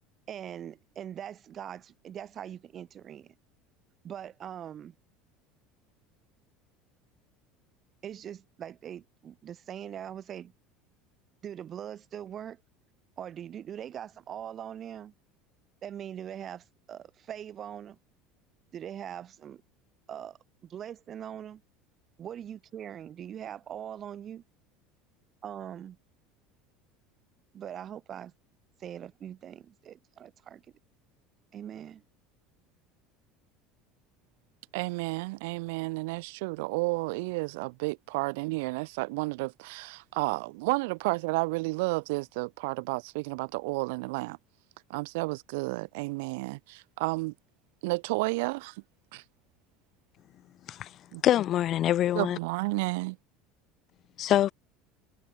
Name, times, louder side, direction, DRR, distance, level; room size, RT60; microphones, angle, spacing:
voice 1, 0.3-3.3 4.0-4.9 8.0-10.5 11.4-12.6 13.2-15.1 15.8-18.0 18.7-19.6 20.1-21.6 22.2-24.4 25.4-26.0 27.5-28.3 28.8-30.6 31.5-32.0, right 9 dB, 40° right, 2.7 m, -41 dB
voice 2, 34.7-44.4 44.9-47.3 47.8-48.7 49.1-49.2 51.1-51.2 52.1-53.2, right 25 dB, 80° right, 0.8 m, -31 dB
voice 3, 51.2-52.4 54.2-54.5, left 12 dB, 45° left, 1.1 m, -24 dB
supercardioid pair, 110°, 0 cm